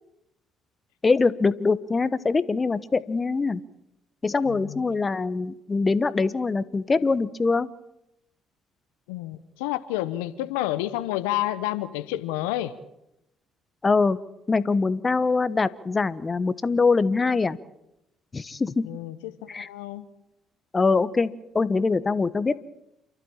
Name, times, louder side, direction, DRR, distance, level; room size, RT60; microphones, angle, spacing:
voice 1, 1.0-3.6 4.2-7.7 13.8-14.2 14.5-17.6 18.3-18.9 19.5-19.7 20.7-22.6, left 4 dB, 30° left, 15 dB, 1.1 m, -23 dB
voice 2, 4.5-4.8 9.1-12.7 18.8-20.0, left 15 dB, 85° left, 12 dB, 0.9 m, -30 dB
29.0 x 12.0 x 8.9 m, 0.86 s
hypercardioid pair, 55°, 0 cm